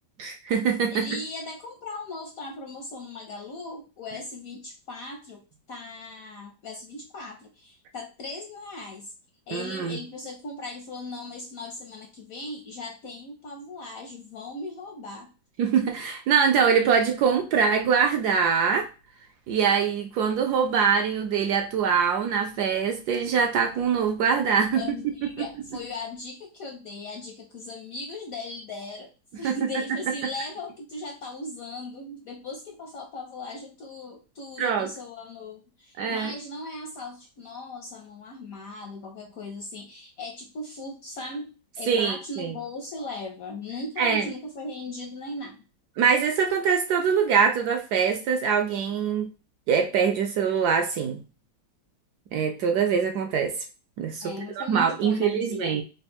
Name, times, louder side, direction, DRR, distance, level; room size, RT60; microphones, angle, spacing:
voice 1, 0.2-1.1 9.5-10.0 15.6-18.9 19.5-25.0 25.4-25.5 29.4-29.6 34.6-34.9 36.0-36.3 41.9-42.6 44.0-44.3 46.0-49.3 49.7-51.2 52.3-53.6 54.0-55.8, right 6 dB, 70° right, 4 dB, 1.0 m, -23 dB
voice 2, 0.9-9.1 9.5-15.3 24.7-29.1 29.4-41.5 41.8-45.6 54.2-55.8, left 2 dB, 70° left, 3 dB, 0.8 m, -38 dB
3.6 x 2.2 x 4.2 m, 0.32 s
omnidirectional pair, 2.0 m